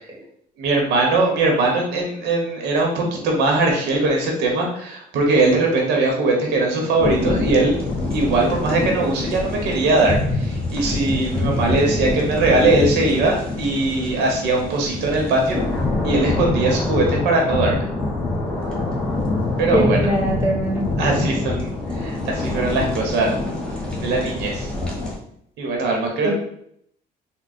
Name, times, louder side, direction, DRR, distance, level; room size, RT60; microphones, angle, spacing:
voice 1, 0.6-7.8 8.1-15.6 16.0-17.9 19.6-20.0 21.0-23.4 24.0-24.7 25.6-26.3, right 2 dB, 85° right, 1 dB, 1.0 m, -20 dB
sound 1, 7.0-25.1, left 2 dB, 5° left, 1.1 m, -25 dB
voice 2, 19.7-20.8 26.2-26.3, right 1 dB, 10° right, -2 dB, 1.3 m, -22 dB
3.6 x 2.2 x 4.1 m, 0.69 s
cardioid pair, 110°, 17 cm